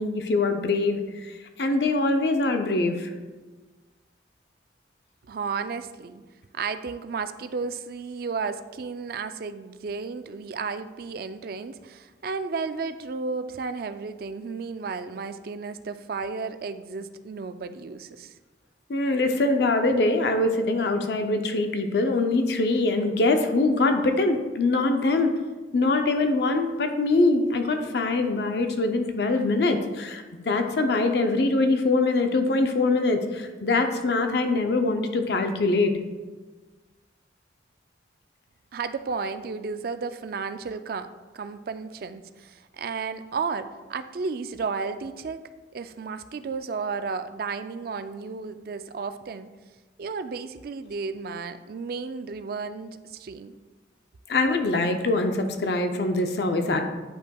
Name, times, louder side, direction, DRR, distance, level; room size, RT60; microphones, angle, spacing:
voice 1, 0.0-1.3 1.6-3.1 18.9-25.3 25.7-35.9 54.3-56.8, left 2 dB, 60° left, 5 dB, 0.5 m, -23 dB
voice 2, 5.3-6.2 6.5-18.3 38.7-41.1 41.3-45.4 45.7-49.5 50.0-53.5, right 5 dB, 55° right, 11 dB, 0.3 m, -33 dB
9.7 x 5.4 x 2.3 m, 1.3 s
head